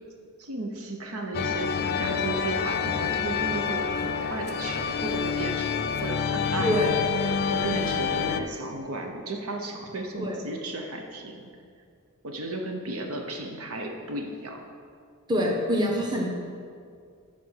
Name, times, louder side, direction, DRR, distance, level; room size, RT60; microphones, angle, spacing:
voice 1, 0.4-6.9 7.2-11.4 12.2-14.6, right 2 dB, 75° right, 3 dB, 0.9 m, -35 dB
sound 1, 1.3-8.4, left 6 dB, 50° left, 0.5 m, -27 dB
voice 2, 6.6-7.0 10.2-10.4 15.3-16.3, equal, 20° right, -1 dB, 1.1 m, -25 dB
11.0 x 4.2 x 6.5 m, 2.2 s
head